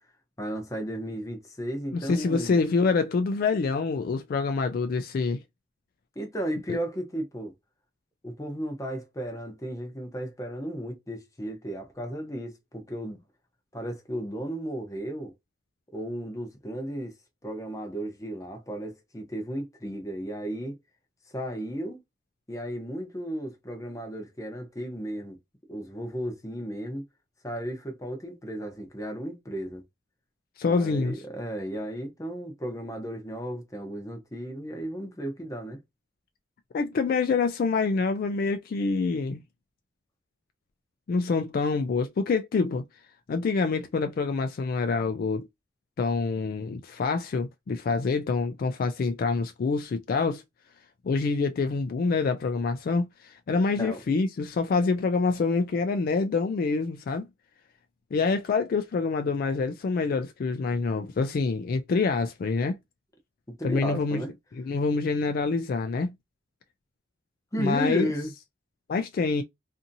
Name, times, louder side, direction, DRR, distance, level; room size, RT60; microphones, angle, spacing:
voice 1, 0.4-2.6 6.2-7.5 8.2-13.2 13.7-15.3 15.9-17.1 17.4-20.8 21.3-22.0 22.5-25.4 25.7-27.0 27.4-29.8 30.7-35.8 53.8-54.0 63.5-64.3 67.5-68.3, equal, 15° left, 0.7 m, -34 dB
voice 2, 1.9-5.4 6.7-6.8 30.6-31.1 36.7-39.4 41.1-42.8 43.3-45.5 46.0-50.4 51.0-57.3 58.1-62.8 63.6-64.2 64.6-66.1 67.6-68.1 68.9-69.4, left 4 dB, 50° left, 0.3 m, -26 dB
2.7 x 2.5 x 2.6 m
head